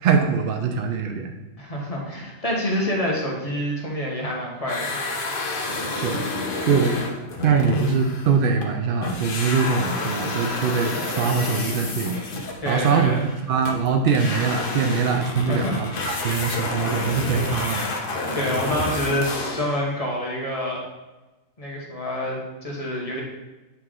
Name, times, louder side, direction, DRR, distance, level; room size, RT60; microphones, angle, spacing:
voice 1, 0.0-1.3 5.9-6.2 6.7-7.0 7.4-12.2 12.7-17.9, right 5 dB, 80° right, 4 dB, 0.4 m, -22 dB
voice 2, 1.6-5.0 12.6-13.2 15.5-15.7 16.0-16.3 18.3-20.8 21.6-23.2, equal, 30° left, -2 dB, 1.1 m, -27 dB
sound 1, 4.6-8.7 9.0-19.8, left 2 dB, 45° left, 0.8 m, -29 dB
8.4 x 3.2 x 3.7 m, 1.1 s
omnidirectional pair, 1.5 m